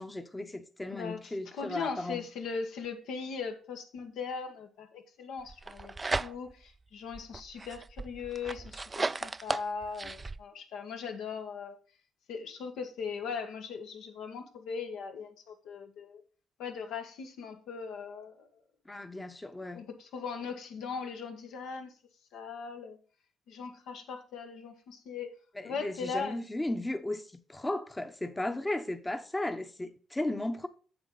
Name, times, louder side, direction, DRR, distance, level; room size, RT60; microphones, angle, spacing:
voice 1, 0.0-2.2 18.9-19.8 25.5-30.7, left 1 dB, 15° left, 0.9 m, -35 dB
voice 2, 0.9-11.8 12.3-16.2 16.6-18.5 19.7-21.9 22.3-23.0 23.5-25.4 25.6-26.4, left 5 dB, 85° left, 1.6 m, -39 dB
sound 1, 5.5-6.7 7.1-10.4, right 3 dB, 25° right, 0.3 m, -35 dB
7.9 x 7.2 x 3.9 m
cardioid pair, 90°, 0 cm